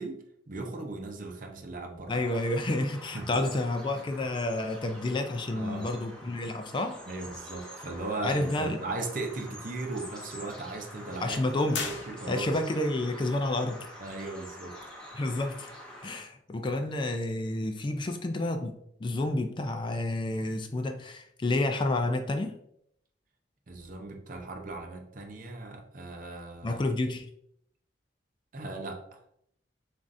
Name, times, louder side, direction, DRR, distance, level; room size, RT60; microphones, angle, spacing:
voice 1, 0.0-2.1 3.1-3.4 5.5-5.9 7.1-11.4 11.9-12.5 14.0-14.7 23.7-26.8 28.5-29.2, right 2 dB, 45° right, 3 dB, 0.7 m, -37 dB
voice 2, 2.1-7.0 8.2-8.8 11.2-11.9 12.3-13.8 15.1-15.7 16.0-22.6 26.6-27.3, left 2 dB, 25° left, 6 dB, 0.3 m, -30 dB
Bird vocalization bird call bird song, 2.1-16.2, equal, 5° left, 0.9 m, -47 dB
sound 1, 11.7-12.7, left 5 dB, 80° left, 0.8 m, -37 dB
7.2 x 2.5 x 2.6 m, 0.72 s
head